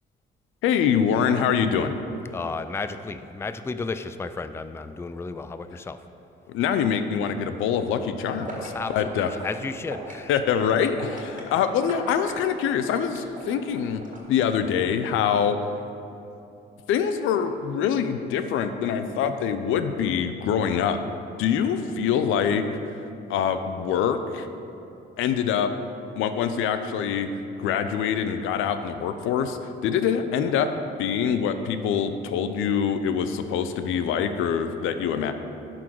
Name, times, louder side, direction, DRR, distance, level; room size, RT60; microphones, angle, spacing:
voice 1, 0.6-1.9 6.5-9.3 10.3-14.0 14.3-15.6 16.9-21.0 21.4-22.6 23.3-24.5 25.2-25.7 26.2-27.3 27.6-30.7 31.0-35.3, left 7 dB, 90° left, 9 dB, 0.5 m, -24 dB
voice 2, 2.3-6.1 8.3-10.4 11.5-11.7, left 4 dB, 15° left, 10 dB, 0.3 m, -34 dB
sound 1, 8.4-14.5, right 2 dB, 40° right, 1.8 m, -40 dB
10.5 x 3.9 x 6.1 m, 2.8 s
cardioid pair, 90°, 20 cm